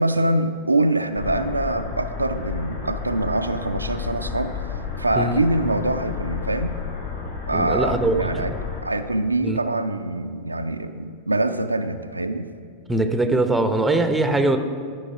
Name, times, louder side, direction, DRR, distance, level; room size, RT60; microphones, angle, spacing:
voice 1, 0.0-4.5 5.0-6.8 7.5-8.5 8.8-12.5, right 2 dB, 85° right, 8 dB, 0.3 m, -24 dB
sound 1, 1.1-8.8, left 6 dB, 55° left, 1.7 m, -31 dB
voice 2, 7.5-8.5 9.4-9.6 12.9-14.6, right 2 dB, 10° right, 8 dB, 0.6 m, -21 dB
12.0 x 5.2 x 4.9 m, 2.3 s
figure-of-eight pair, 90°, 0 cm